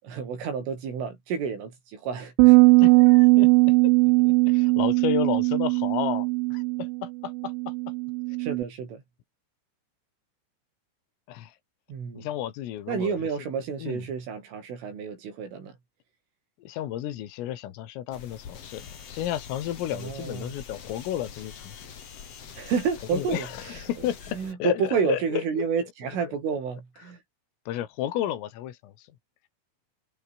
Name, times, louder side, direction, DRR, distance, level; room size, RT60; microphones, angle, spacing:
voice 1, 0.0-2.6 8.4-9.0 11.9-12.3 12.9-15.8 19.9-20.5 22.6-23.8 24.3-27.2, right 6 dB, 70° right, 8.4 m, -30 dB
sound 1, 2.4-8.6, right 25 dB, 90° right, 2.7 m, -19 dB
voice 2, 2.7-3.9 4.3-7.7 11.3-11.6 12.1-13.1 13.8-14.0 16.6-21.9 23.1-25.6 27.7-29.1, left 12 dB, 80° left, 4.7 m, -32 dB
sound 2, 18.1-24.5, left 7 dB, 40° left, 2.4 m, -44 dB
omnidirectional pair, 5.9 m